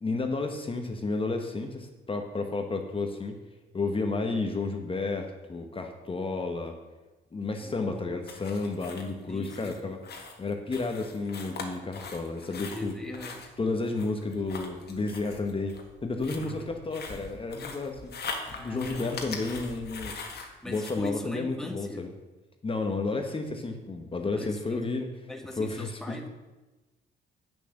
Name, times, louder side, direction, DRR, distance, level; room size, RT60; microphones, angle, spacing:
voice 1, 0.0-3.3 3.7-6.7 7.3-10.0 10.4-12.9 13.6-18.1 18.6-20.1 20.7-22.1 22.6-25.1 25.6-26.3, left 3 dB, 25° left, 4 dB, 1.1 m, -31 dB
voice 2, 7.6-8.2 9.3-10.0 12.7-13.4 16.4-16.8 18.5-19.5 20.6-22.1 24.3-24.9 25.3-26.3, left 1 dB, ahead, 4 dB, 1.2 m, -40 dB
sound 1, 8.3-21.1, left 4 dB, 55° left, 1.7 m, -42 dB
8.5 x 6.7 x 6.5 m, 1.2 s
cardioid pair, 90°, 20 cm